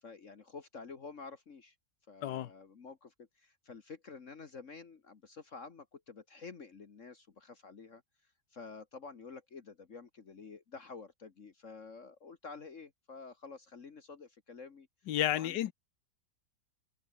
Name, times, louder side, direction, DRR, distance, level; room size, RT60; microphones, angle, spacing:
voice 1, 0.0-1.8 2.1-8.0 8.5-14.9 15.3-15.6, left 4 dB, 45° left, 1.7 m, -49 dB
voice 2, 15.1-15.7, left 12 dB, 75° left, 1.4 m, -31 dB
omnidirectional pair, 1.9 m